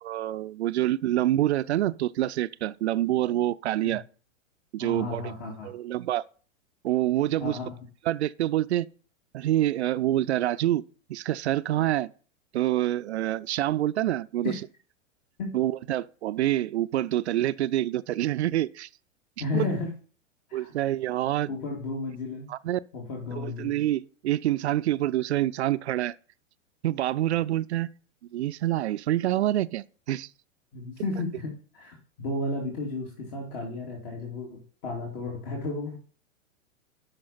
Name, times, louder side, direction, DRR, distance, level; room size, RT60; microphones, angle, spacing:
voice 1, 0.0-4.0 4.7-5.2 5.6-6.2 6.8-7.6 8.1-8.9 9.3-10.8 11.1-12.1 12.5-14.5 15.5-18.9 19.5-19.6 20.5-21.5 22.5-22.8 23.3-26.1 26.8-27.9 28.3-30.3, right 13 dB, 60° right, 0.5 m, -26 dB
voice 2, 4.8-5.7 7.4-7.7 14.4-14.6 15.4-15.5 19.4-19.9 20.5-20.7 21.5-22.5 22.9-23.7 30.7-36.0, left 3 dB, 45° left, 2.5 m, -33 dB
11.5 x 5.5 x 4.2 m
figure-of-eight pair, 100°, 38 cm